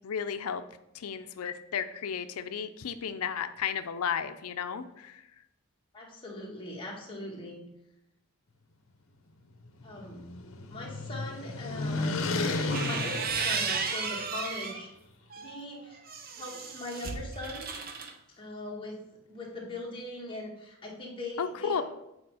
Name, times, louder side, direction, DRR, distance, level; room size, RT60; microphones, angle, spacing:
voice 1, 0.0-0.6 0.9-5.2 21.4-21.8, left 7 dB, 90° left, 9 dB, 0.5 m, -33 dB
voice 2, 5.9-7.6 9.8-10.2 10.7-14.9 15.4-16.0 16.4-17.7 18.4-19.0 19.3-21.8, left 2 dB, 25° left, -3 dB, 1.7 m, -40 dB
sound 1, 9.5-14.3, left 3 dB, 65° left, 0.9 m, -33 dB
sound 2, 12.5-14.8 15.3-18.1, right 5 dB, 45° right, 0.7 m, -34 dB
8.6 x 4.4 x 4.8 m, 0.86 s
head